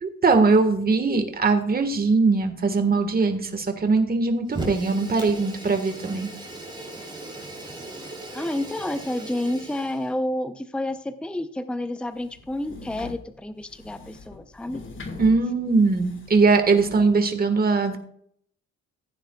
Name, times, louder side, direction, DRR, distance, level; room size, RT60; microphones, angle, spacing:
voice 1, 0.0-6.3 15.2-18.0, right 4 dB, 30° right, 6 dB, 1.6 m, -21 dB
Fire, 4.5-10.1, right 2 dB, 15° right, 3.6 m, -37 dB
voice 2, 8.3-14.8, left 1 dB, 5° left, 10 dB, 0.7 m, -30 dB
sound 1, 12.1-17.2, left 3 dB, 40° left, 1.9 m, -42 dB
15.5 x 9.3 x 2.4 m, 0.66 s
cardioid pair, 90°, 30 cm